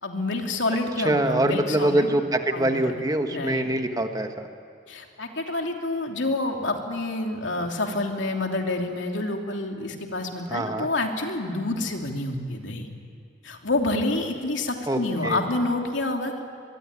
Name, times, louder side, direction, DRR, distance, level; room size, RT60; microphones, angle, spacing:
voice 1, 0.0-2.2 2.5-2.9 3.3-3.8 4.9-12.9 13.4-16.4, left 2 dB, 85° left, 2 dB, 3.0 m, -28 dB
voice 2, 1.0-4.5 10.5-10.9 14.9-15.4, right 1 dB, 20° right, 6 dB, 1.4 m, -24 dB
25.0 x 22.5 x 9.8 m, 2.2 s
head